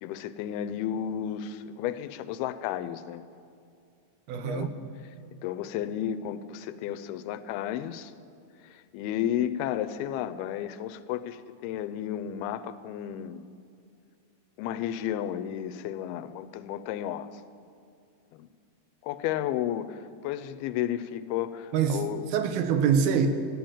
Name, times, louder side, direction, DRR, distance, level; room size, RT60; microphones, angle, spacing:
voice 1, 0.0-3.2 4.3-4.7 5.4-8.1 8.7-13.4 14.6-17.3 18.3-18.5 19.0-22.2, left 10 dB, 90° left, 13 dB, 2.5 m, -33 dB
voice 2, 4.3-4.7 21.7-22.0 22.3-23.3, right 7 dB, 85° right, 8 dB, 2.8 m, -24 dB
14.0 x 9.2 x 8.8 m, 2.4 s
omnidirectional pair, 4.4 m